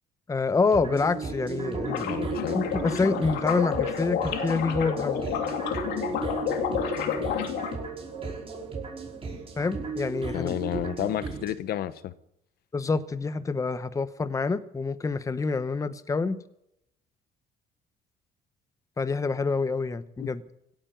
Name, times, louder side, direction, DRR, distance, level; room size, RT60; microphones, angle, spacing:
voice 1, 0.3-2.3 2.5-5.2 9.6-10.5 12.7-16.4 19.0-20.4, left 4 dB, 20° left, 0.9 m, -27 dB
sound 1, 0.7-11.5, right 4 dB, 35° right, 5.5 m, -35 dB
sound 2, 1.9-7.8, left 9 dB, 85° left, 2.6 m, -30 dB
voice 2, 2.1-2.6 10.3-12.1 20.2-20.3, left 12 dB, 65° left, 1.0 m, -31 dB
17.0 x 8.9 x 9.1 m
cardioid pair, 110°, 17 cm